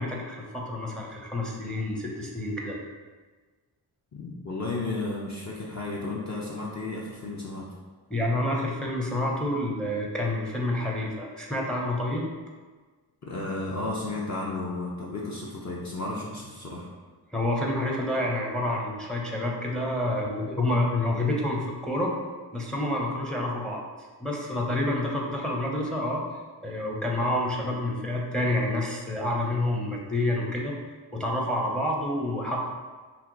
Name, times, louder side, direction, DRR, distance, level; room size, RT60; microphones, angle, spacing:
voice 1, 0.0-2.8 8.1-12.3 17.3-22.1 22.5-23.8 24.2-26.2 26.6-30.7 31.1-32.6, left 1 dB, ahead, -1 dB, 0.6 m, -28 dB
voice 2, 4.1-7.7 13.2-16.9, left 2 dB, 40° left, -4 dB, 0.6 m, -33 dB
2.8 x 2.2 x 3.8 m, 1.4 s
supercardioid pair, 40°, 45 cm